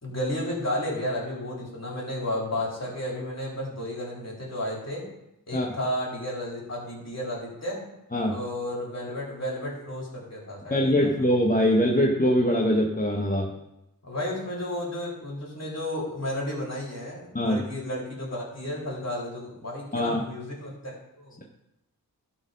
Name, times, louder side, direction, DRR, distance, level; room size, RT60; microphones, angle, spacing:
voice 1, 0.0-5.1 5.5-7.9 8.3-11.2 14.0-21.4, left 1 dB, 45° left, -4 dB, 3.7 m, -32 dB
voice 2, 10.7-13.5 17.3-17.6 19.9-20.2, equal, 25° left, 0 dB, 1.1 m, -23 dB
12.0 x 4.5 x 5.2 m, 0.88 s
cardioid pair, 50°, 35 cm